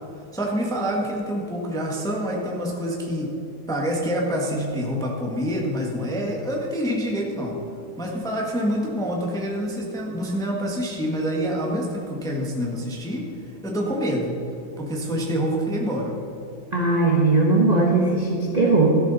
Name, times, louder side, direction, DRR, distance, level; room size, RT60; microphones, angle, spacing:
voice 1, 0.3-3.3 3.7-7.6 8.0-13.2 13.6-14.3 14.8-16.2, equal, ahead, -1 dB, 1.3 m, -26 dB
voice 2, 16.7-19.0, right 3 dB, 25° right, -2 dB, 1.1 m, -19 dB
13.5 x 11.0 x 4.1 m, 2.9 s
omnidirectional pair, 2.2 m